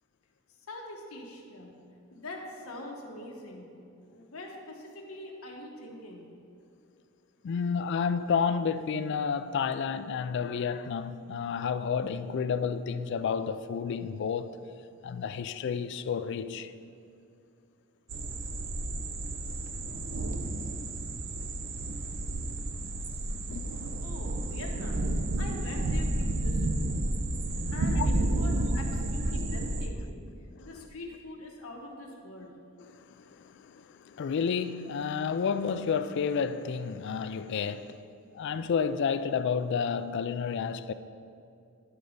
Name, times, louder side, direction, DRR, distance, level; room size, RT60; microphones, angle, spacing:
voice 1, 0.7-1.7 2.1-3.7 4.1-6.3 24.0-25.0 25.4-27.0 27.7-30.2 30.6-32.5, left 2 dB, 85° left, 1.2 m, -43 dB
voice 2, 7.4-14.6 15.0-16.7 23.5-23.6 27.5-28.1 30.6-30.7 32.8-38.0 38.3-40.9, left 6 dB, 55° left, 0.3 m, -31 dB
sound 1, 18.1-29.9, right 1 dB, 60° right, 0.6 m, -31 dB
11.0 x 4.0 x 5.0 m
head